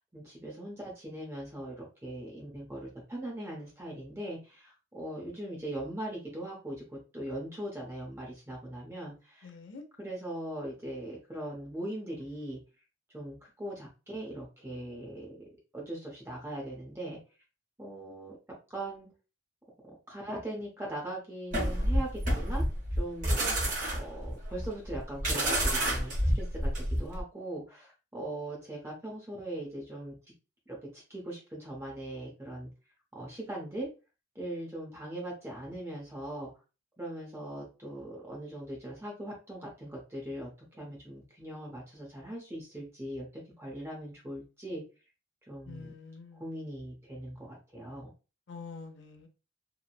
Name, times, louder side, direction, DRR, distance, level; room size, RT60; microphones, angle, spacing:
voice 1, 0.0-9.5 10.0-12.6 13.1-15.4 15.7-17.2 17.8-18.4 18.7-19.1 19.9-22.6 22.9-30.1 30.7-32.7 33.1-33.9 34.3-36.5 37.0-44.8 45.5-45.9 46.4-48.1, right 1 dB, 15° right, 0.6 m, -40 dB
voice 2, 9.4-9.8 45.7-46.4 48.5-49.3, left 4 dB, 80° left, 0.6 m, -46 dB
sound 1, 21.5-27.2, right 1 dB, 45° right, 0.8 m, -29 dB
2.9 x 2.0 x 2.3 m
head